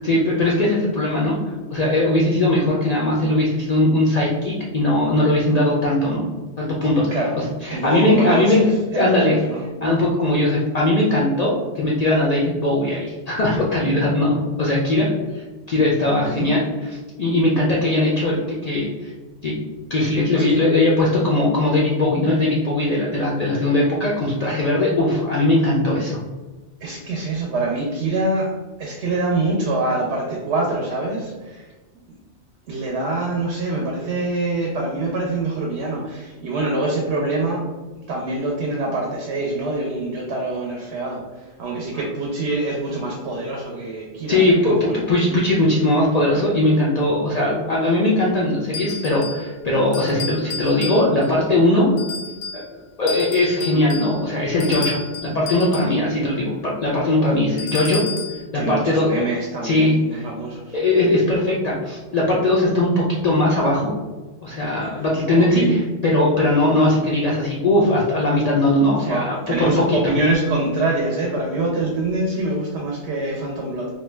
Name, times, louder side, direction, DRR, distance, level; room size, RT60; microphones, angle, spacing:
voice 1, 0.0-6.2 6.6-8.6 8.9-9.4 9.8-19.1 19.4-19.5 19.9-26.2 44.3-51.9 52.5-52.6 53.0-58.0 58.5-59.1 59.6-60.3 60.7-63.9 64.4-70.0, left 1 dB, 60° left, -5 dB, 0.4 m, -19 dB
voice 2, 7.1-7.4 7.7-9.7 16.3-16.5 20.3-20.6 26.8-28.5 28.8-31.7 32.7-37.6 38.1-41.2 41.6-45.0 58.5-60.8 65.4-65.8 69.1-73.9, right 2 dB, 70° right, -1 dB, 0.8 m, -25 dB
sound 1, 48.7-49.5 49.9-51.4 52.0-52.7 53.1-56.0 57.6-58.4, left 4 dB, 85° left, 0.9 m, -32 dB
2.6 x 2.2 x 3.1 m, 1.2 s
omnidirectional pair, 1.2 m